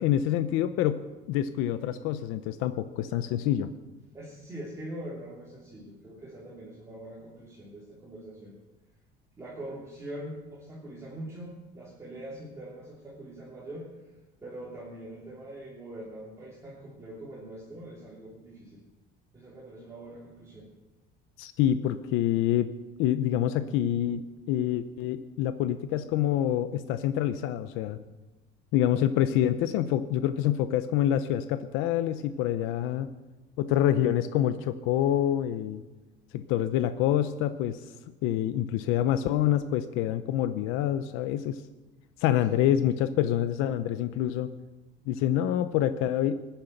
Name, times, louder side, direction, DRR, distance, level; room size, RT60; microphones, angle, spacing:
voice 1, 0.0-3.7 21.4-22.7 23.0-24.2 24.5-28.0 28.7-33.1 33.6-35.8 36.3-37.8 38.2-41.6 42.2-44.5 45.1-46.4, left 11 dB, 80° left, 11 dB, 0.8 m, -26 dB
voice 2, 4.1-8.5 9.4-13.8 14.4-18.8 19.3-20.7 42.5-43.0, right 1 dB, 15° right, -6 dB, 3.1 m, -43 dB
19.5 x 10.5 x 6.6 m, 1.1 s
cardioid pair, 165°, 20 cm